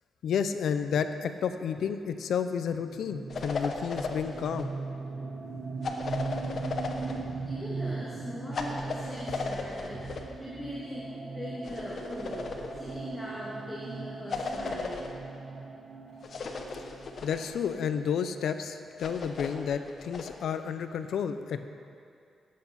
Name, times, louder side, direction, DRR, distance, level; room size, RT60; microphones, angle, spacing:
voice 1, 0.2-4.7 14.7-14.8 17.2-21.6, left 7 dB, 75° left, 9 dB, 0.8 m, -31 dB
sound 1, 2.7-18.3, right 4 dB, 45° right, 1.1 m, -39 dB
sound 2, 3.3-4.7 5.8-7.2 8.5-10.3 11.6-13.0 14.3-15.1 16.2-17.7 19.0-20.3, left 4 dB, 50° left, 1.2 m, -36 dB
voice 2, 7.0-15.0, equal, 10° left, -7 dB, 2.1 m, -41 dB
18.5 x 8.5 x 5.9 m, 2.5 s
wide cardioid pair, 140°, 0 cm